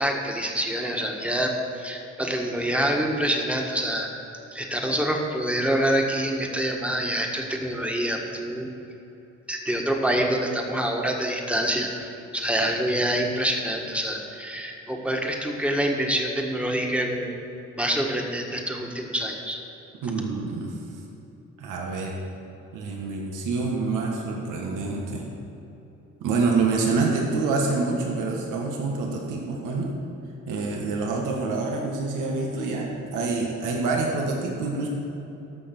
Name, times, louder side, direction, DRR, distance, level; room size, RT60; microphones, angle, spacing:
voice 1, 0.0-1.5 1.8-4.1 4.5-8.7 9.5-17.4 17.8-19.6, right 1 dB, 5° right, 1 dB, 1.6 m, -26 dB
voice 2, 20.0-20.8 21.6-22.2 22.7-25.3 26.2-30.0 30.5-34.9, right 3 dB, 90° right, 0 dB, 1.5 m, -26 dB
14.0 x 5.8 x 6.0 m, 3.0 s
cardioid pair, 90°, 30 cm